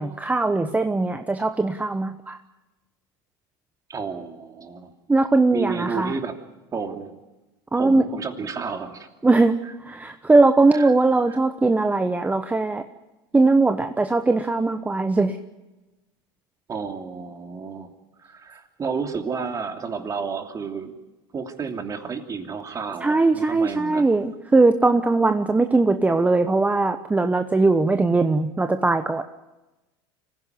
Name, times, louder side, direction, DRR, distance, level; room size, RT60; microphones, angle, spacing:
voice 1, 0.0-2.4 5.1-6.2 7.7-8.0 9.2-9.6 9.9-12.8 13.3-15.4 23.0-29.2, right 3 dB, 10° right, 8 dB, 1.0 m, -20 dB
voice 2, 3.9-4.9 5.5-6.3 6.7-7.1 7.7-9.1 9.6-9.7 10.7-10.9 11.3-11.4 16.7-17.9 18.2-20.9 21.3-24.1, right 5 dB, 30° right, 5 dB, 2.9 m, -31 dB
25.0 x 16.0 x 9.6 m, 1.1 s
supercardioid pair, 100°, 12 cm